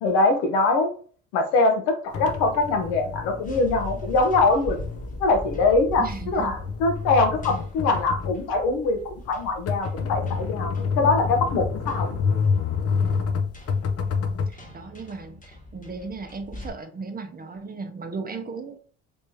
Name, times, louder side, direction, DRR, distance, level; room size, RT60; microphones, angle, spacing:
voice 1, 0.0-0.9 1.3-4.8 5.2-12.1, left 3 dB, 75° left, 5 dB, 1.0 m, -23 dB
sound 1, 2.1-14.5, left 5 dB, 40° left, 0.7 m, -28 dB
sound 2, 3.4-16.7, left 1 dB, 20° left, 1.2 m, -41 dB
voice 2, 6.0-6.5 14.5-18.8, right 4 dB, 25° right, 6 dB, 0.7 m, -36 dB
3.4 x 3.3 x 2.8 m, 0.42 s
hypercardioid pair, 60°, 36 cm